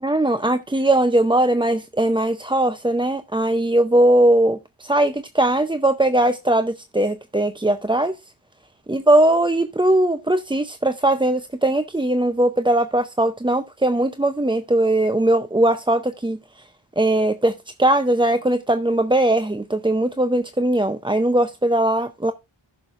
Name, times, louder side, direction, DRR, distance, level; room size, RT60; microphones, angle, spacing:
voice 1, 0.0-8.2 8.9-16.4 17.0-17.5 17.8-22.3, right 1 dB, 10° right, 0.5 m, -19 dB
14.5 x 6.5 x 2.4 m
wide cardioid pair, 55°, 47 cm